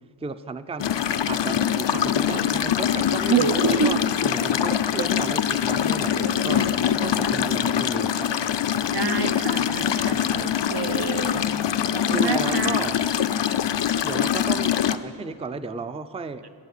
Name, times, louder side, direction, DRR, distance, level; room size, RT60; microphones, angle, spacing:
voice 1, 0.2-6.7 7.0-8.3 12.1-13.0 14.0-16.5, right 4 dB, 15° right, 11 dB, 0.4 m, -33 dB
sound 1, 0.8-15.0, left 9 dB, 80° left, 0.5 m, -23 dB
voice 2, 3.3-4.0 5.0-5.1 7.2-7.6 8.9-12.8, right 6 dB, 65° right, 8 dB, 0.7 m, -27 dB
12.5 x 7.7 x 8.3 m, 2.3 s
wide cardioid pair, 65°, 42 cm